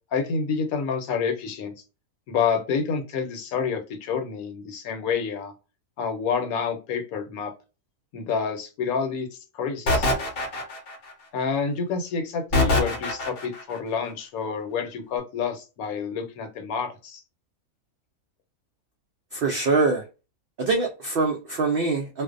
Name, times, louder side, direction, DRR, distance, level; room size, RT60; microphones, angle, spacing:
voice 1, 0.1-1.7 2.3-5.5 6.0-7.5 8.1-10.1 11.3-17.2, left 6 dB, 75° left, 1.1 m, -28 dB
sound 1, 9.9-11.1 12.5-13.6, left 2 dB, 50° left, 0.7 m, -23 dB
voice 2, 19.3-20.0 20.6-22.2, right 3 dB, 85° right, 0.5 m, -24 dB
2.5 x 2.1 x 2.4 m
omnidirectional pair, 1.6 m